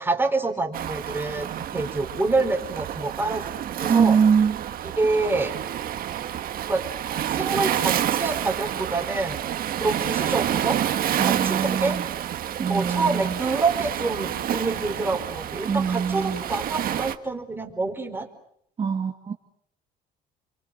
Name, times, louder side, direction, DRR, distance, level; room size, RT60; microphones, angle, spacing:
voice 1, 0.0-3.5 3.8-4.2 5.0-5.5 6.7-6.9 7.3-9.4 9.8-10.8 11.2-12.0 12.7-18.3, right 3 dB, 10° right, 4 dB, 4.6 m, -27 dB
Waves surf, 0.7-17.2, right 10 dB, 60° right, 1.6 m, -29 dB
voice 2, 3.9-4.6 11.2-12.0 12.6-13.4 15.6-16.4 18.8-19.3, right 6 dB, 35° right, 2 dB, 2.2 m, -23 dB
29.5 x 24.5 x 7.7 m, 0.70 s
cardioid pair, 110°, 17 cm